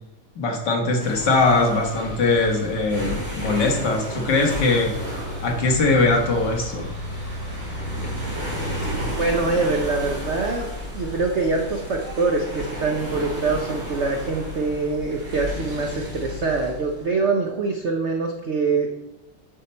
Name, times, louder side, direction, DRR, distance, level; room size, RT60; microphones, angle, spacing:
voice 1, 0.4-4.9 5.4-6.9, left 3 dB, 60° left, 1 dB, 1.8 m, -21 dB
sound 1, 1.0-17.1, equal, 5° right, 3.5 m, -32 dB
voice 2, 9.2-10.7 10.9-18.9, right 3 dB, 70° right, 2 dB, 0.6 m, -24 dB
10.0 x 5.7 x 4.3 m, 0.96 s
omnidirectional pair, 2.2 m